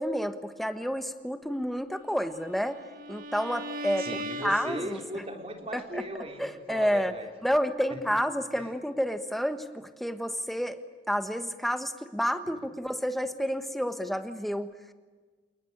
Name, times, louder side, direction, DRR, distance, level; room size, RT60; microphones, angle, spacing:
voice 1, 0.0-2.8 3.1-4.1 4.4-5.2 5.7-6.1 6.4-7.1 7.4-10.8 11.1-14.7, equal, ahead, 9 dB, 1.4 m, -30 dB
Bowed string instrument, 2.2-5.4, right 1 dB, 50° right, 1.7 m, -39 dB
voice 2, 4.0-7.3 12.5-12.6, right 1 dB, 35° right, 4 dB, 3.7 m, -38 dB
28.5 x 19.5 x 9.8 m, 1.4 s
head